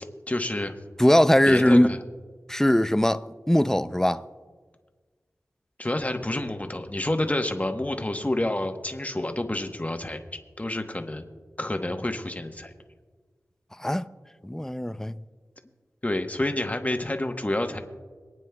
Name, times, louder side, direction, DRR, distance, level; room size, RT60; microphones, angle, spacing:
voice 1, 0.3-0.7 1.4-2.0 5.8-10.2 10.6-11.2 11.6-12.7 16.0-17.8, left 1 dB, 25° left, 1.1 m, -28 dB
voice 2, 1.0-2.0 2.5-4.2 13.8-14.1 14.4-15.1, left 1 dB, 10° left, 0.4 m, -21 dB
27.0 x 9.1 x 2.3 m
cardioid pair, 45°, 6 cm